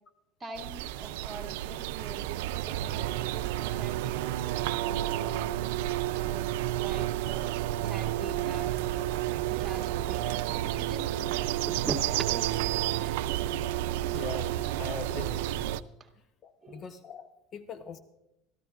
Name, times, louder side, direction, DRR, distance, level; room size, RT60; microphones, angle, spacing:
voice 1, 0.4-4.2 4.8-5.5 6.2-9.1 9.5-13.1 16.0-16.1 16.6-16.8, right 4 dB, 20° right, 1 dB, 2.4 m, -42 dB
sound 1, 0.6-15.8, right 13 dB, 85° right, 0.4 m, -31 dB
voice 2, 14.1-15.7 16.4-18.0, left 6 dB, 40° left, 9 dB, 0.8 m, -42 dB
24.5 x 14.0 x 2.5 m, 0.88 s
supercardioid pair, 120°, 0 cm